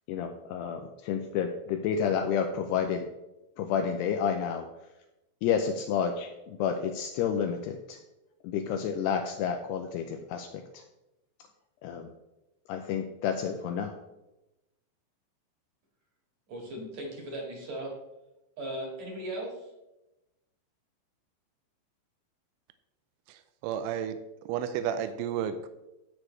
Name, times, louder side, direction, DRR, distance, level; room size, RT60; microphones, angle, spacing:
voice 1, 0.1-3.1 3.6-4.7 5.4-8.0 8.4-10.8 11.8-12.1 12.7-14.0, left 7 dB, 85° left, 4 dB, 2.4 m, -30 dB
voice 2, 16.5-17.9 18.6-19.7, right 1 dB, 50° right, -1 dB, 2.5 m, -37 dB
voice 3, 23.3-24.2 24.5-25.7, right 9 dB, 85° right, 10 dB, 3.1 m, -32 dB
17.0 x 6.3 x 3.2 m, 0.96 s
omnidirectional pair, 5.5 m